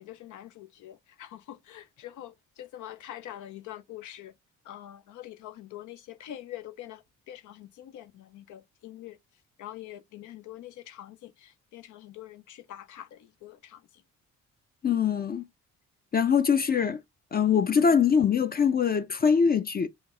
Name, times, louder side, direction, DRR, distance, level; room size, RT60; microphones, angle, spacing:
voice 1, 0.0-4.3 4.6-9.2 9.6-13.8, left 12 dB, 80° left, 0.6 m, -45 dB
voice 2, 14.8-15.4 16.1-17.0 17.3-19.9, left 6 dB, 30° left, 0.4 m, -23 dB
5.0 x 2.0 x 3.6 m
cardioid pair, 90°, 30 cm